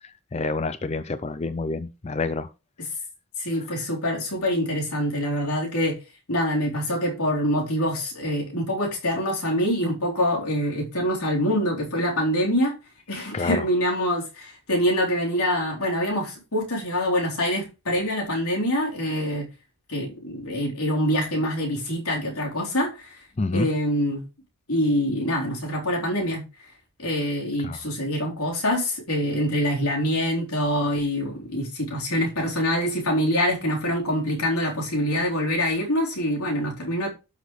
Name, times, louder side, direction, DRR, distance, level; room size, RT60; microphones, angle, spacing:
voice 1, 0.3-2.5 13.3-13.6 23.4-23.7 27.6-27.8, left 3 dB, 30° left, 0.4 m, -27 dB
voice 2, 3.4-6.0 6.3-12.8 13.1-19.5 19.9-23.2 23.5-24.2 24.7-26.4 27.0-37.1, equal, 80° left, 3.9 m, -25 dB
12.0 x 6.2 x 3.2 m
head